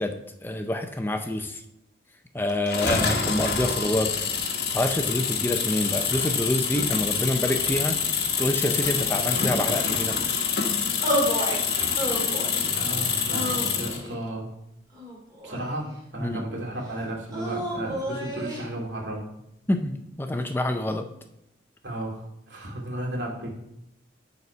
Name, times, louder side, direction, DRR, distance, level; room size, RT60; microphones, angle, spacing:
voice 1, 0.0-1.6 2.3-4.3 4.7-10.2 16.2-16.4 19.7-21.1, left 1 dB, 10° left, 6 dB, 0.5 m, -27 dB
sound 1, 2.7-14.1, left 6 dB, 60° left, 1.1 m, -26 dB
sound 2, 11.0-11.6 12.0-12.6 13.3-14.2 14.9-15.9 17.3-18.7, equal, 20° right, 1.9 m, -30 dB
voice 2, 12.7-14.5 15.4-19.3 21.8-23.5, right 1 dB, 85° right, -1 dB, 2.3 m, -34 dB
9.1 x 4.2 x 5.5 m, 0.79 s
head